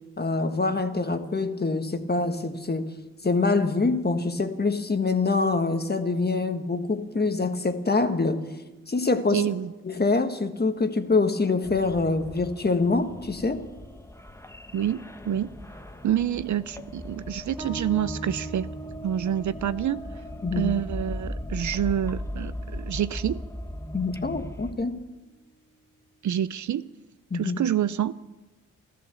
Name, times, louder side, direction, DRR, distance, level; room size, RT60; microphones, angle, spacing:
voice 1, 0.2-2.9 3.2-8.4 8.9-9.4 9.8-13.6 20.4-20.7 23.9-25.0 27.3-27.6, left 3 dB, 30° left, 1.5 m, -25 dB
voice 2, 9.3-9.7 14.7-15.5 16.0-18.7 19.0-20.0 20.5-23.4 26.2-26.9 27.3-28.1, right 10 dB, 60° right, 0.6 m, -27 dB
sound 1, 11.6-24.7, left 1 dB, 10° left, 1.1 m, -38 dB
Bass guitar, 17.6-24.7, right 4 dB, 10° right, 2.0 m, -45 dB
13.5 x 13.5 x 7.0 m
cardioid pair, 55°, 33 cm